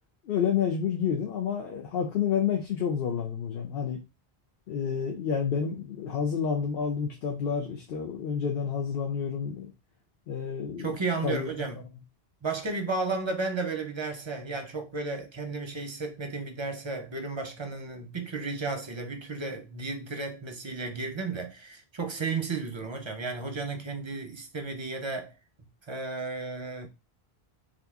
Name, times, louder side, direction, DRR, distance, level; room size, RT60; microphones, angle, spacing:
voice 1, 0.3-4.0 4.7-9.7 10.3-11.0 11.2-11.5, left 7 dB, 65° left, 0.8 m, -29 dB
voice 2, 10.8-11.8 12.4-25.3 25.9-26.9, right 3 dB, 35° right, 0.5 m, -33 dB
2.8 x 2.5 x 3.4 m
omnidirectional pair, 1.1 m